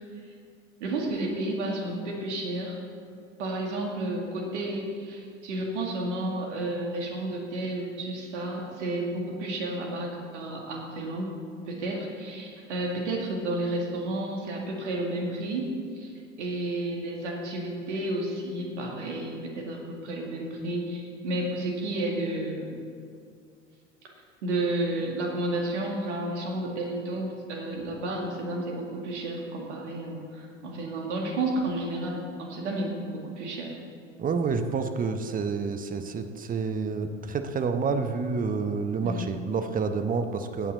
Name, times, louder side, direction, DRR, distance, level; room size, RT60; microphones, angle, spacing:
voice 1, 0.8-2.8 3.4-11.3 11.6-22.8 24.4-33.7 39.0-39.3, right 1 dB, 65° right, 0 dB, 2.1 m, -31 dB
voice 2, 34.2-40.7, right 5 dB, 20° right, 8 dB, 0.8 m, -29 dB
16.0 x 8.9 x 4.0 m, 2.3 s
figure-of-eight pair, 70°, 38 cm